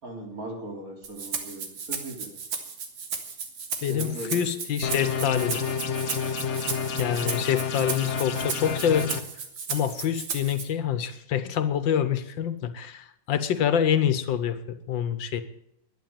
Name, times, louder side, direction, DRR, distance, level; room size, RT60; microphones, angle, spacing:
voice 1, 0.0-2.3 3.8-4.4, right 1 dB, 45° right, 1 dB, 3.7 m, -38 dB
Rattle (instrument), 1.0-10.6, right 5 dB, 85° right, 2.5 m, -35 dB
voice 2, 3.8-5.6 7.0-9.1 9.7-14.6 14.9-15.4, left 9 dB, 80° left, 12 dB, 1.7 m, -26 dB
sound 1, 4.8-9.2, left 6 dB, 45° left, 1.1 m, -29 dB
12.0 x 10.0 x 8.9 m, 0.78 s
omnidirectional pair, 2.0 m